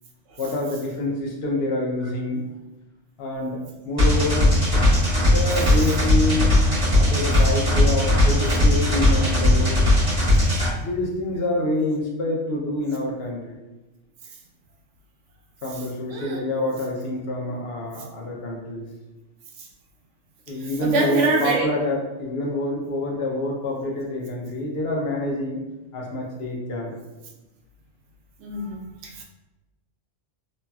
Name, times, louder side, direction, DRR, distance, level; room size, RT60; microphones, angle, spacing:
voice 1, 0.4-2.4 3.2-4.5 5.2-6.6 7.0-9.9 10.8-13.6 15.6-18.9 20.5-25.6 25.9-26.9, left 1 dB, 65° left, -1 dB, 0.8 m, -27 dB
sound 1, 4.0-10.7, left 1 dB, 30° right, 1.2 m, -18 dB
voice 2, 16.1-16.5 20.8-21.7 28.4-29.2, right 3 dB, 85° right, 0 dB, 0.9 m, -25 dB
3.0 x 2.6 x 2.2 m, 1.1 s
omnidirectional pair, 1.2 m